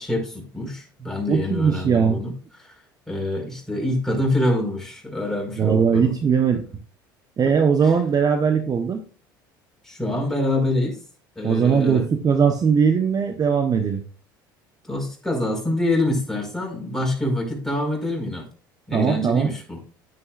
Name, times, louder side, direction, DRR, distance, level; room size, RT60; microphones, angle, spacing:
voice 1, 0.0-2.3 2.6-2.7 3.1-6.2 7.4-7.5 9.8-11.0 11.3-12.1 14.9-18.5 18.9-19.8, left 1 dB, 5° left, -1 dB, 5.0 m, -25 dB
voice 2, 1.3-2.2 5.6-6.6 7.4-9.0 11.4-14.0 18.9-19.5, right 6 dB, 35° right, 6 dB, 1.1 m, -20 dB
11.0 x 9.6 x 2.5 m, 0.39 s
hypercardioid pair, 70°, 11 cm